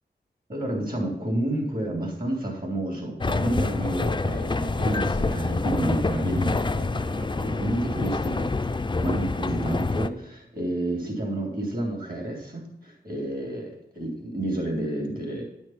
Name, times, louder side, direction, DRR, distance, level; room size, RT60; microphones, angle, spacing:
voice 1, 0.5-15.5, right 1 dB, 55° right, 1 dB, 3.1 m, -30 dB
sound 1, 3.2-10.1, left 3 dB, 25° left, 0.4 m, -27 dB
9.9 x 6.3 x 5.8 m, 0.81 s
wide cardioid pair, 75°, 18 cm